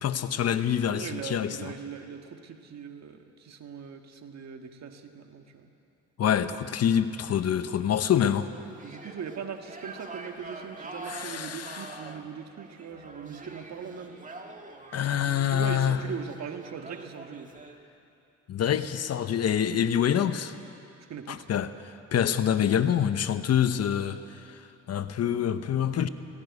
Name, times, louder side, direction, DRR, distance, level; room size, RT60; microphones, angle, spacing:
voice 1, 0.0-1.7 6.2-8.5 11.1-12.0 14.9-16.0 18.5-20.5 21.3-24.2 24.5-26.1, left 9 dB, 55° left, 11 dB, 0.9 m, -26 dB
voice 2, 0.9-5.7 8.8-14.2 15.5-17.5 21.1-21.5, right 7 dB, 60° right, 5 dB, 1.8 m, -40 dB
sound 1, 8.5-17.8, right 2 dB, 25° right, 1.9 m, -45 dB
17.5 x 17.0 x 9.6 m, 2.7 s
cardioid pair, 90°, 30 cm